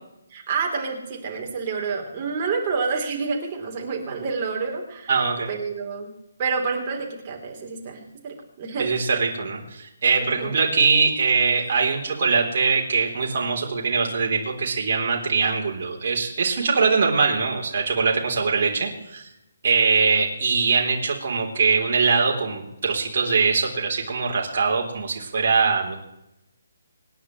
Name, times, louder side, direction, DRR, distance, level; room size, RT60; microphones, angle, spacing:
voice 1, 0.3-5.1 5.5-6.1 6.4-8.9 10.2-10.5, right 5 dB, 30° right, 0 dB, 3.6 m, -28 dB
voice 2, 5.1-5.5 8.8-19.3 19.6-26.0, right 5 dB, 50° right, -1 dB, 3.6 m, -22 dB
26.5 x 10.5 x 3.2 m, 0.87 s
hypercardioid pair, 160°, 0 cm